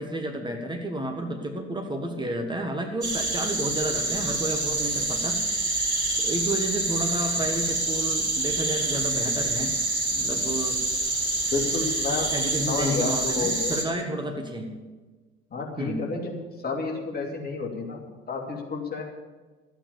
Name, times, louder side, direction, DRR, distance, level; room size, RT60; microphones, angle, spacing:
voice 1, 0.0-5.4 6.2-9.8 10.1-10.8 12.3-14.8 15.8-16.1, right 1 dB, 15° right, 3 dB, 1.5 m, -31 dB
sound 1, 3.0-13.8, right 2 dB, 80° right, 2.0 m, -27 dB
voice 2, 11.5-12.3 12.7-13.8 15.5-16.4 16.6-19.0, left 4 dB, 30° left, 0 dB, 2.8 m, -30 dB
13.0 x 8.9 x 6.9 m, 1.3 s
figure-of-eight pair, 60°, 32 cm